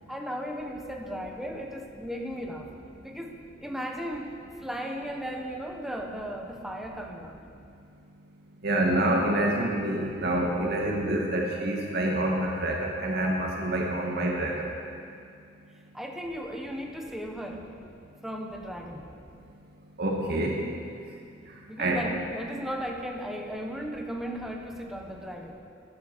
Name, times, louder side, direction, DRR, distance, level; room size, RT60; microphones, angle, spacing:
voice 1, 0.1-2.7 3.0-4.4 4.6-7.4 15.9-17.7 18.2-19.1 21.7-25.5, equal, ahead, 2 dB, 1.1 m, -36 dB
voice 2, 8.6-14.6 20.0-20.5 21.8-22.0, right 1 dB, 55° right, -1 dB, 2.0 m, -27 dB
12.5 x 10.5 x 6.1 m, 2.4 s
head